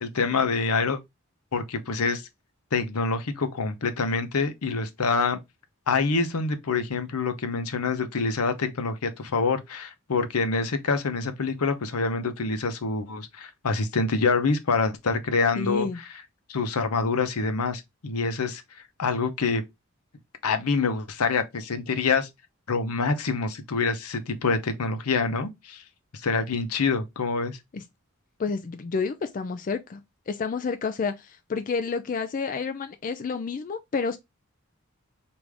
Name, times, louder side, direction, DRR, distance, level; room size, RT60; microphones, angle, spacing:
voice 1, 0.0-1.0 1.5-2.2 2.7-5.4 5.9-15.9 16.5-18.6 19.0-19.6 20.4-22.3 22.7-25.8 26.2-27.6, left 4 dB, 85° left, 0.7 m, -26 dB
voice 2, 15.6-16.0 27.7-27.8 28.4-30.0 30.3-34.2, left 5 dB, 35° left, 0.3 m, -29 dB
4.9 x 2.6 x 3.4 m
head